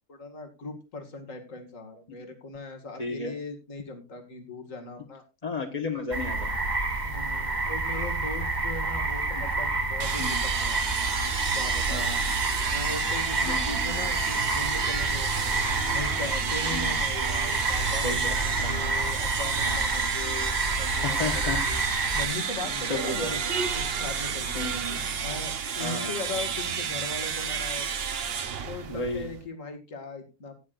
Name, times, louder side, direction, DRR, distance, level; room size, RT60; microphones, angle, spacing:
voice 1, 0.1-5.2 7.0-10.8 11.5-12.1 12.7-15.3 15.9-21.8 22.1-23.5 23.8-27.9 28.7-30.5, left 3 dB, 60° left, 4 dB, 2.5 m, -39 dB
voice 2, 3.0-3.3 5.4-6.5 10.2-10.4 11.9-12.2 13.4-13.8 16.7-17.0 18.0-18.9 19.6-20.1 20.9-21.6 22.9-23.4 24.5-25.0 25.8-26.1 28.9-29.3, left 3 dB, 25° left, 2 dB, 1.4 m, -33 dB
sound 1, 6.1-22.3, right 2 dB, 30° right, 1.8 m, -29 dB
sound 2, 10.0-29.5, right 6 dB, 50° right, 1.0 m, -31 dB
17.0 x 9.7 x 2.5 m, 0.27 s
omnidirectional pair, 1.6 m